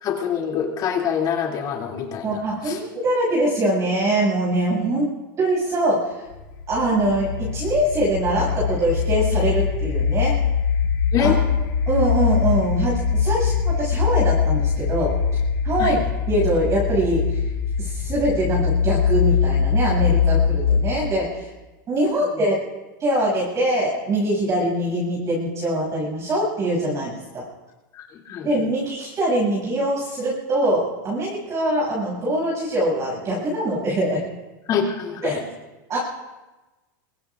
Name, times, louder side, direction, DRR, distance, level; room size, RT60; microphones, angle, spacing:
voice 1, 0.0-2.8 11.1-11.4 15.8-16.0 28.0-28.5 34.7-35.4, left 7 dB, 35° left, 0 dB, 2.8 m, -25 dB
voice 2, 2.2-5.1 5.4-6.2 6.7-10.3 11.2-11.3 11.9-15.1 15.6-16.0 16.3-17.4 17.8-21.5 21.9-22.6 23.0-27.4 28.4-34.2 35.2-35.4 35.9-36.0, right 1 dB, 25° right, -4 dB, 7.1 m, -23 dB
sound 1, 6.3-21.2, left 6 dB, 75° left, 4.5 m, -22 dB
24.0 x 23.5 x 2.5 m, 1.1 s
supercardioid pair, 140°, 11 cm